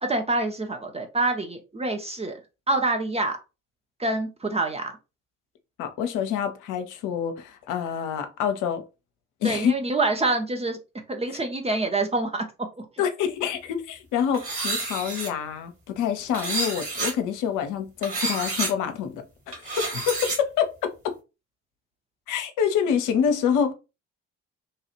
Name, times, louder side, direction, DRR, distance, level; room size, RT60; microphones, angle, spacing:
voice 1, 0.0-2.3 2.7-3.4 4.0-5.0 9.4-10.8 11.1-12.9, right 2 dB, 15° right, 0.6 m, -26 dB
voice 2, 5.8-8.8 9.4-9.7 13.0-20.9 22.3-23.7, left 8 dB, 55° left, 0.6 m, -27 dB
sound 1, 14.3-15.3 16.3-17.1 18.0-18.7 19.5-20.4, right 3 dB, 35° right, 1.6 m, -29 dB
3.0 x 2.4 x 2.9 m
figure-of-eight pair, 50°, 37 cm